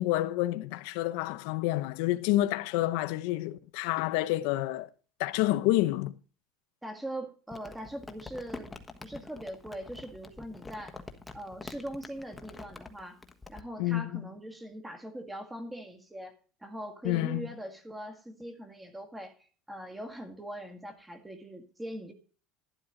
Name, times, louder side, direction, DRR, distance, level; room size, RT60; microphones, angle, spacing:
voice 1, 0.0-4.9 5.2-6.1 13.8-14.2 17.0-17.5, left 16 dB, 75° left, 0.8 m, -28 dB
voice 2, 6.8-8.7 9.0-11.0 11.3-13.2 13.5-16.4 16.6-19.4 19.7-22.1, right 1 dB, 5° right, 1.9 m, -41 dB
Crumpling crinkling, 7.5-13.6, left 3 dB, 10° left, 1.3 m, -46 dB
11.5 x 11.5 x 3.9 m
cardioid pair, 150°, 0 cm